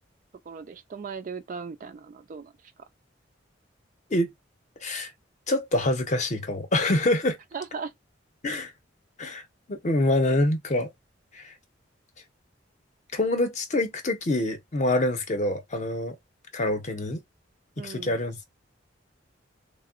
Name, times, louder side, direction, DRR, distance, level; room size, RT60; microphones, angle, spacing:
voice 1, 0.5-2.5 7.5-7.9 17.8-18.2, right 5 dB, 45° right, 0.4 m, -37 dB
voice 2, 5.5-7.4 8.4-8.7 9.2-9.4 9.7-10.9 11.3-11.5 13.1-16.2 16.5-17.2 17.8-18.5, left 1 dB, 40° left, 0.6 m, -26 dB
3.5 x 2.0 x 2.4 m
head